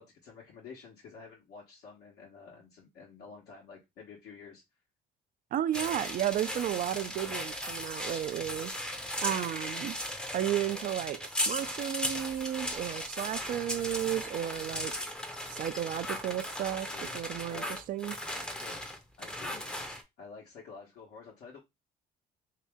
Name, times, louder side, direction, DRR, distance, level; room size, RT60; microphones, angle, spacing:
voice 1, 0.0-4.6 16.9-17.2 17.5-17.8 18.5-18.8 19.2-19.8 20.2-21.6, left 5 dB, 75° left, 1.1 m, -50 dB
voice 2, 5.5-8.7 9.2-10.0 10.3-15.0 15.5-18.2, right 12 dB, 55° right, 0.4 m, -33 dB
sound 1, 5.7-20.0, left 1 dB, 5° left, 0.6 m, -37 dB
2.9 x 2.8 x 3.5 m
cardioid pair, 110°, 17 cm